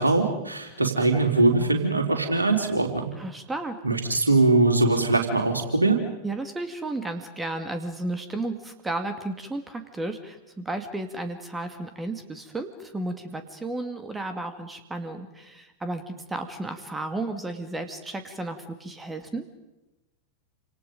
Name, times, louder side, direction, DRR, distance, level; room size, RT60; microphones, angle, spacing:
voice 1, 0.0-2.9 3.8-6.0, right 3 dB, 80° right, 3 dB, 3.6 m, -21 dB
voice 2, 3.2-3.8 6.2-19.4, right 2 dB, 10° right, 8 dB, 2.3 m, -33 dB
28.5 x 27.0 x 5.3 m, 0.99 s
figure-of-eight pair, 90°, 0 cm